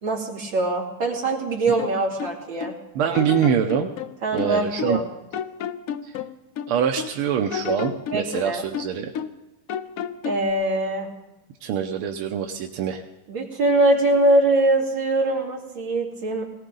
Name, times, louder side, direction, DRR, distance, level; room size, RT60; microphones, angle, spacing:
voice 1, 0.0-2.8 4.2-5.0 8.1-8.7 10.3-11.1 13.3-16.4, right 2 dB, 60° right, -2 dB, 3.4 m, -22 dB
sound 1, 1.8-2.8 3.1-5.1 5.3-7.2 7.5-9.4 9.7-10.5, left 8 dB, 80° left, 0.7 m, -31 dB
voice 2, 3.0-3.9 4.3-5.0 6.0-6.1 6.7-9.1 11.6-13.0, right 8 dB, 90° right, 4 dB, 1.7 m, -24 dB
19.0 x 18.5 x 3.9 m, 0.96 s
omnidirectional pair, 2.3 m